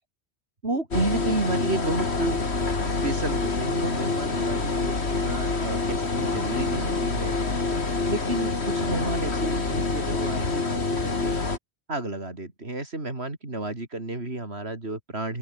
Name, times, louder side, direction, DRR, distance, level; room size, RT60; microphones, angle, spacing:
voice 1, 0.6-2.4 2.8-7.4 8.0-11.4 11.9-15.4, right 2 dB, 75° right, 4.9 m, -31 dB
sound 1, 0.9-11.6, left 3 dB, 80° left, 2.9 m, -26 dB
open air
omnidirectional pair, 1.1 m